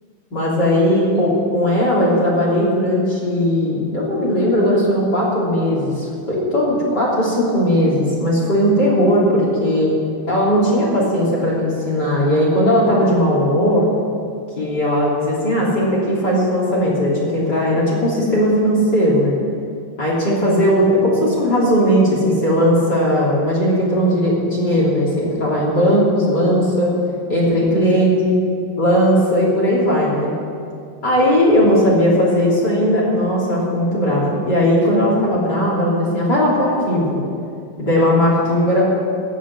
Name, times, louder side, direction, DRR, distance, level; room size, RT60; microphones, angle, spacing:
voice 1, 0.3-9.9 10.3-13.9 14.5-19.4 20.0-26.9 27.3-28.3 28.8-30.3 31.0-37.2 37.8-38.9, equal, 25° left, -6 dB, 3.3 m, -17 dB
16.5 x 6.2 x 9.9 m, 2.4 s
omnidirectional pair, 4.7 m